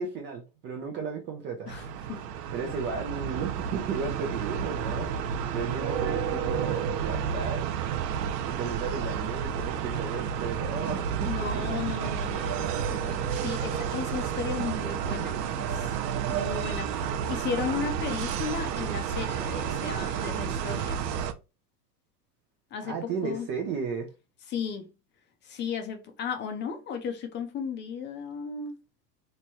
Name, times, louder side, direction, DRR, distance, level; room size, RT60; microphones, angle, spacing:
voice 1, 0.0-1.7 2.5-5.1 5.5-7.6 8.5-11.3 11.5-11.6 22.8-24.1, right 5 dB, 25° right, 0.4 m, -34 dB
voice 2, 1.7-2.3 2.6-2.8 11.2-16.0 16.3-21.0 22.7-23.5 24.5-24.9 25.4-28.8, left 6 dB, 25° left, 0.6 m, -35 dB
sound 1, 1.7-21.3, right 8 dB, 85° right, 0.7 m, -31 dB
3.1 x 2.2 x 4.1 m
supercardioid pair, 135°, 48 cm